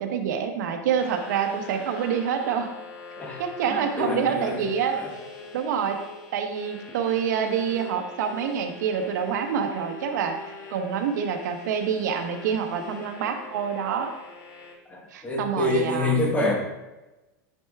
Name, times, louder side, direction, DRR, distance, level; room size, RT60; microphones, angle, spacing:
voice 1, 0.0-2.7 3.4-4.9 5.5-6.0 6.3-10.4 10.7-14.1 15.1-16.1, right 7 dB, 65° right, 5 dB, 1.1 m, -27 dB
sound 1, 1.0-14.7, left 4 dB, 90° left, 2.3 m, -43 dB
voice 2, 3.2-4.6 4.9-5.1 14.8-16.5, left 2 dB, 15° left, 0 dB, 1.2 m, -27 dB
9.9 x 4.6 x 3.6 m, 1.1 s
supercardioid pair, 165°, 10 cm